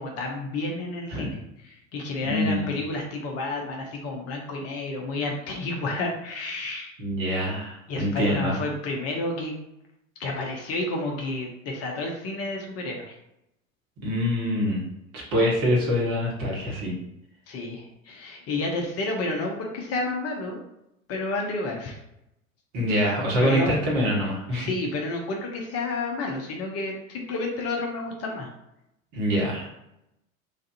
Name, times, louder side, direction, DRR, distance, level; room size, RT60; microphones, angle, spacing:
voice 1, 0.0-7.0 7.9-9.6 10.2-13.2 17.5-20.6 21.1-22.0 23.4-23.8 24.5-28.5, left 2 dB, 35° left, 0 dB, 0.7 m, -30 dB
voice 2, 2.2-2.7 7.0-8.6 14.0-14.8 15.1-16.9 22.7-24.7 29.1-29.7, equal, 45° right, -3 dB, 1.4 m, -25 dB
3.2 x 2.4 x 2.8 m, 0.84 s
figure-of-eight pair, 80°, 41 cm